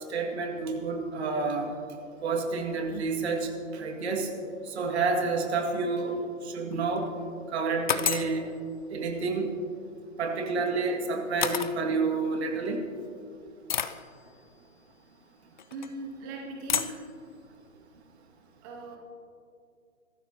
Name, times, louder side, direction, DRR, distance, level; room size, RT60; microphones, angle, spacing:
voice 1, 0.1-1.7 2.2-4.3 4.7-6.2 6.4-7.1 7.5-8.4 8.9-9.5 10.2-12.8, right 4 dB, 50° right, 2 dB, 2.1 m, -29 dB
sound 1, 6.7-7.1 7.9-8.4 10.4-10.5 11.4-11.7 12.6-12.7 13.7-14.0 15.6-15.9 16.7-17.0, left 8 dB, 35° left, 0.4 m, -29 dB
voice 2, 15.7-17.0 18.6-19.0, right 3 dB, 15° right, 0 dB, 0.6 m, -39 dB
23.5 x 13.5 x 2.9 m, 2.4 s
hypercardioid pair, 140°, 41 cm